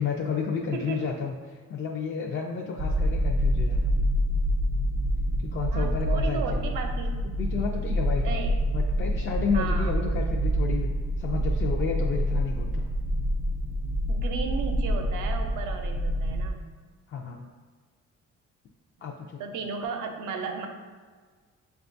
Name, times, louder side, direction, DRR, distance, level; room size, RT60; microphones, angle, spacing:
voice 1, 0.0-3.9 5.4-6.6 7.2-8.3 8.7-10.9 11.2-12.9 17.1-17.5 19.0-19.4, left 6 dB, 40° left, 0 dB, 0.4 m, -31 dB
voice 2, 0.7-1.1 5.7-7.2 8.2-8.5 9.5-9.9 14.1-16.6 19.1-20.7, right 5 dB, 80° right, 4 dB, 0.6 m, -34 dB
sound 1, 2.8-16.5, equal, 35° right, 0.4 m, -26 dB
6.5 x 2.3 x 2.6 m, 1.5 s
cardioid pair, 90°, 30 cm